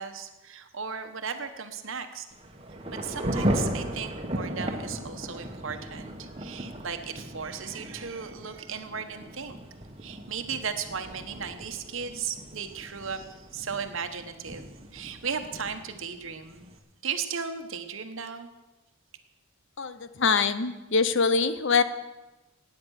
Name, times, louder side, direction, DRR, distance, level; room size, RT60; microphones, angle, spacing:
voice 1, 0.0-2.3 2.9-9.6 10.0-16.7 17.0-18.5, right 6 dB, 60° right, 8 dB, 1.2 m, -36 dB
Thunder / Rain, 2.3-16.8, equal, 25° right, 1.3 m, -36 dB
voice 2, 19.8-21.8, left 5 dB, 55° left, 12 dB, 0.8 m, -24 dB
16.5 x 9.6 x 6.5 m, 1.1 s
head